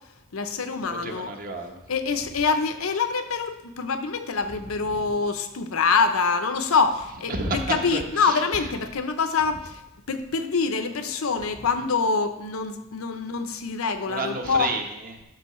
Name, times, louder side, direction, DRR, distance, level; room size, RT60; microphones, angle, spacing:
voice 1, 0.3-1.3 1.9-9.8 10.1-14.7, left 5 dB, 90° left, 8 dB, 0.7 m, -25 dB
voice 2, 0.9-1.8 4.9-5.0 7.3-8.7 14.1-15.2, right 2 dB, 45° right, 4 dB, 1.0 m, -31 dB
12.0 x 5.5 x 3.1 m, 0.90 s
head